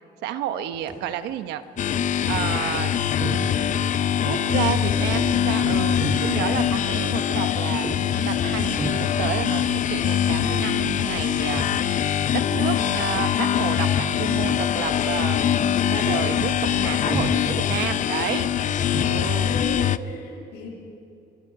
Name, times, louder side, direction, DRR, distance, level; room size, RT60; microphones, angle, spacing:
voice 1, 0.2-1.6 2.3-2.9 3.3-3.8 4.2-7.9 8.1-11.7 12.3-15.6 15.9-18.5 19.1-19.5, right 11 dB, 90° right, 10 dB, 1.1 m, -31 dB
sound 1, 0.7-1.1 1.6-3.9 4.2-12.1 12.4-13.5 13.8-14.0 14.4-14.8 15.1-19.3, right 2 dB, 25° right, 3.5 m, -36 dB
sound 2, 1.8-20.0, left 9 dB, 50° left, 0.6 m, -23 dB
voice 2, 4.8-5.3 6.0-6.5 16.7-17.4 18.3-20.7, left 3 dB, 85° left, 0 dB, 6.8 m, -38 dB
25.5 x 22.5 x 4.9 m, 2.5 s
cardioid pair, 110°, 17 cm